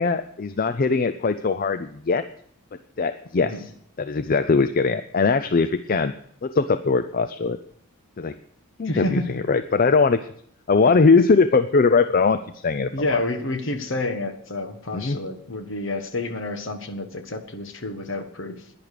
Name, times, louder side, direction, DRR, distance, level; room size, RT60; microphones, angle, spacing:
voice 1, 0.0-2.2 3.0-3.5 4.0-6.1 6.4-7.6 8.2-8.3 8.8-9.2 9.5-10.2 10.7-13.2 14.9-15.2, left 4 dB, 40° left, 11 dB, 0.4 m, -20 dB
voice 2, 8.8-9.4 12.9-18.7, left 2 dB, 55° left, 8 dB, 1.4 m, -29 dB
11.0 x 10.5 x 6.6 m, 0.67 s
head